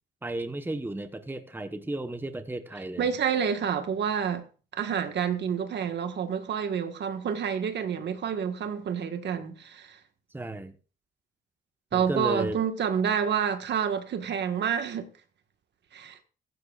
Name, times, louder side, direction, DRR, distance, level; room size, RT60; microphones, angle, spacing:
voice 1, 0.2-3.1 10.3-10.7 11.9-12.6, right 2 dB, 10° right, 1.2 m, -33 dB
voice 2, 3.0-4.4 4.7-10.0 11.9-15.1 15.9-16.2, right 7 dB, 60° right, 1.7 m, -28 dB
16.0 x 15.0 x 2.5 m
cardioid pair, 90°, 20 cm